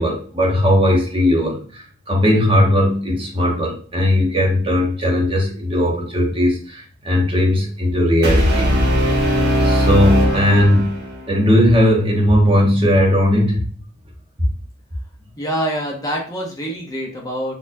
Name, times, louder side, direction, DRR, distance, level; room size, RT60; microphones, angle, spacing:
voice 1, 0.0-8.7 9.6-11.0 11.3-13.6, left 1 dB, 25° right, -2 dB, 1.0 m, -17 dB
Brass instrument, 8.2-11.3, equal, 50° right, 1.0 m, -18 dB
voice 2, 15.4-17.5, equal, 15° left, -1 dB, 0.8 m, -25 dB
4.2 x 2.4 x 2.6 m, 0.42 s
head